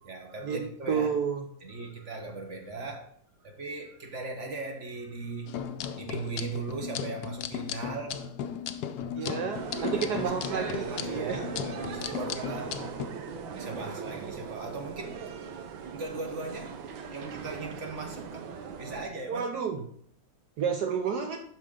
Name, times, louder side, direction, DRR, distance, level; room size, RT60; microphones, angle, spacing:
voice 1, 0.0-1.1 1.6-3.1 3.4-5.7 5.9-8.3 9.1-10.3 10.6-12.8 13.5-15.3 15.9-18.5 18.8-19.5, right 3 dB, 45° right, 1.2 m, -39 dB
voice 2, 0.9-1.5 9.2-11.4 19.3-19.8 20.6-21.4, right 6 dB, 70° right, 1.2 m, -30 dB
sound 1, 5.5-13.1, left 8 dB, 70° left, 1.0 m, -36 dB
sound 2, 9.5-19.0, right 6 dB, 90° right, 1.6 m, -39 dB
12.0 x 4.5 x 3.6 m
omnidirectional pair, 2.1 m